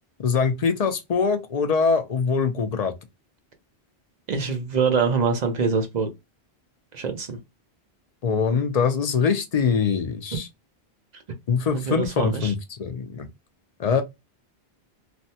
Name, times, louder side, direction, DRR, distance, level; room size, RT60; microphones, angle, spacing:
voice 1, 0.2-2.9 8.2-10.5 11.5-13.3 13.8-14.0, left 5 dB, 50° left, 0.5 m, -23 dB
voice 2, 4.3-6.1 6.9-7.4 11.7-12.5, right 5 dB, 50° right, 0.7 m, -24 dB
3.3 x 2.1 x 2.7 m
omnidirectional pair, 1.0 m